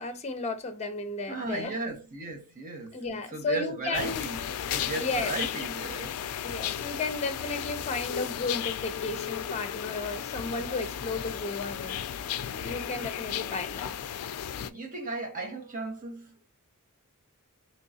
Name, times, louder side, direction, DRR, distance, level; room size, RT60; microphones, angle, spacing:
voice 1, 0.0-1.7 2.9-4.2 4.9-5.3 6.4-12.0 12.6-13.9, left 3 dB, 30° left, 0.6 m, -33 dB
voice 2, 1.3-6.2 14.6-16.4, right 3 dB, 35° right, 1.1 m, -36 dB
sound 1, 3.9-14.7, left 9 dB, 75° left, 0.4 m, -34 dB
3.6 x 3.1 x 2.7 m
head